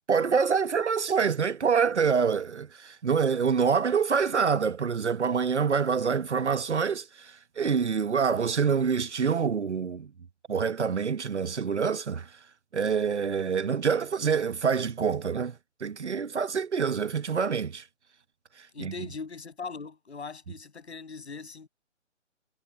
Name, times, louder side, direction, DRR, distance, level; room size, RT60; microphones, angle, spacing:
voice 1, 0.1-10.1 10.5-12.3 12.7-15.5 15.8-17.8 18.8-18.9, right 6 dB, 70° right, 1.1 m, -26 dB
voice 2, 18.7-21.7, left 4 dB, 65° left, 7.9 m, -40 dB
figure-of-eight pair, 140°, 36 cm